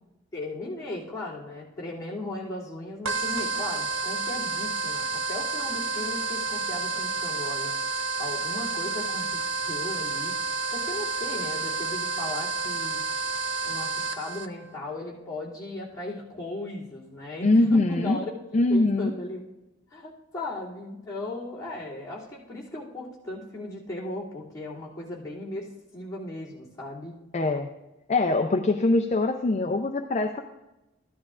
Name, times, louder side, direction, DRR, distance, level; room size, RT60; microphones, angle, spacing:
voice 1, 0.3-7.7 8.2-10.3 10.7-13.0 13.6-19.4 19.9-27.2, left 2 dB, 20° left, -9 dB, 2.6 m, -37 dB
sound 1, 3.0-14.5, right 4 dB, 75° right, 0.6 m, -30 dB
voice 2, 17.4-18.2 18.5-19.1 27.3-27.7 28.1-30.4, left 2 dB, 35° left, 5 dB, 0.4 m, -23 dB
14.0 x 11.0 x 2.5 m, 0.98 s
head